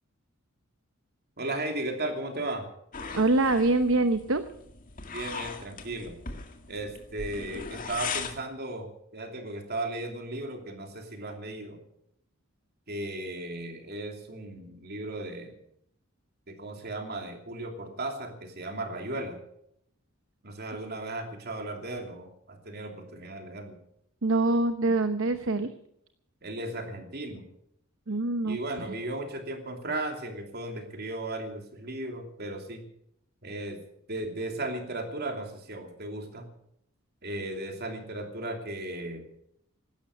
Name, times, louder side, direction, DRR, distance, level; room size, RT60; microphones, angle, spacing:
voice 1, 1.4-2.7 5.1-6.2 6.7-11.8 12.9-15.5 16.5-19.4 20.4-23.8 26.4-27.5 28.4-32.8 33.4-33.8 34.1-36.5 37.2-39.2, right 2 dB, 50° right, 4 dB, 2.9 m, -36 dB
sound 1, 2.9-8.4, left 5 dB, 40° left, 2.1 m, -39 dB
voice 2, 3.1-4.4 24.2-25.7 28.1-28.6, right 2 dB, 65° right, 9 dB, 0.9 m, -24 dB
16.5 x 12.5 x 6.8 m, 0.73 s
head